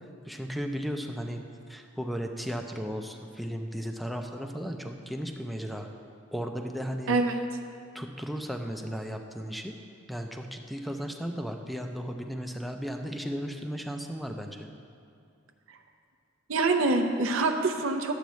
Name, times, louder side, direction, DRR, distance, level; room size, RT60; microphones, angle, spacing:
voice 1, 0.3-1.4 1.7-5.9 6.3-7.2 7.9-9.7 10.1-14.7, equal, ahead, 3 dB, 0.5 m, -35 dB
voice 2, 7.1-7.4 16.5-18.1, right 3 dB, 75° right, 4 dB, 0.6 m, -25 dB
11.5 x 8.0 x 3.1 m, 2.4 s
head